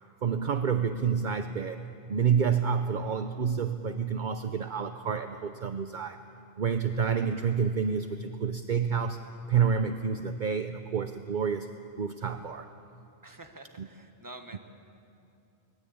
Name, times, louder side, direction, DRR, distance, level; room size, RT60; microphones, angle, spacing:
voice 1, 0.2-6.3 6.6-11.7 12.0-12.7 13.8-13.9 14.5-14.6, right 6 dB, 50° right, 8 dB, 0.8 m, -29 dB
voice 2, 13.2-14.6, right 2 dB, 20° right, 5 dB, 1.5 m, -47 dB
23.5 x 19.5 x 8.6 m, 2.6 s
omnidirectional pair, 1.1 m